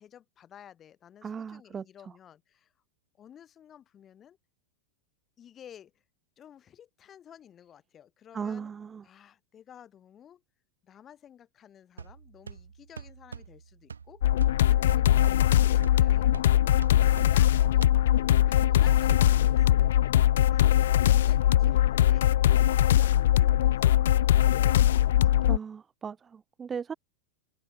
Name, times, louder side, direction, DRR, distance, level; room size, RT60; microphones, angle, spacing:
voice 1, 0.0-2.7 3.2-4.4 5.4-5.9 6.4-8.7 9.0-10.4 10.8-14.2 14.7-15.3 15.7-16.4 17.0-17.9 18.5-22.3 22.8-25.3, left 9 dB, 25° left, 8.0 m, -53 dB
voice 2, 1.2-1.8 8.3-9.0 25.4-26.9, right 6 dB, 20° right, 1.0 m, -37 dB
sound 1, 12.0-19.7, right 6 dB, 70° right, 7.6 m, -46 dB
Looping Techno Beat, 14.2-25.6, left 12 dB, 60° left, 0.3 m, -21 dB
figure-of-eight pair, 90°, 0 cm